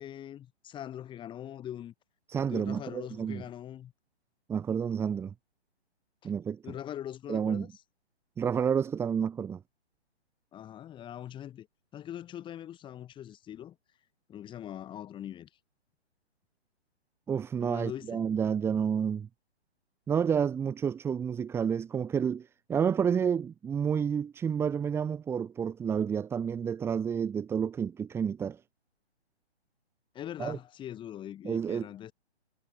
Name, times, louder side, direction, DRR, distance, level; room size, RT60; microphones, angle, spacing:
voice 1, 0.0-1.9 2.5-3.9 6.2-6.3 6.6-7.7 10.5-11.7 11.9-13.8 14.3-15.5 17.6-18.2 30.1-32.1, left 11 dB, 15° left, 5.8 m, -42 dB
voice 2, 2.3-3.4 4.5-5.3 6.2-6.7 7.3-7.7 8.4-9.6 17.3-19.3 20.1-28.6 30.4-30.6 31.4-31.9, right 7 dB, 5° right, 1.2 m, -30 dB
figure-of-eight pair, 140°, 34 cm